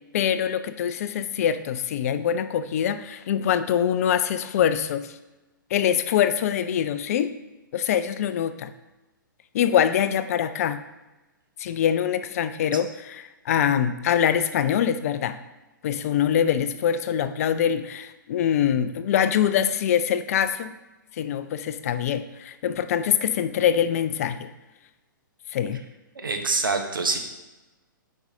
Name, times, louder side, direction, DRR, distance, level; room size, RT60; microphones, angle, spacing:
voice 1, 0.1-5.2 5.7-7.3 7.7-8.7 9.5-10.8 11.6-15.4 15.8-20.7 21.2-24.5 25.5-25.8, left 9 dB, 45° left, 11 dB, 0.4 m, -24 dB
voice 2, 26.1-27.2, right 4 dB, 75° right, 4 dB, 1.1 m, -25 dB
8.5 x 5.3 x 2.7 m, 1.1 s
figure-of-eight pair, 120°, 11 cm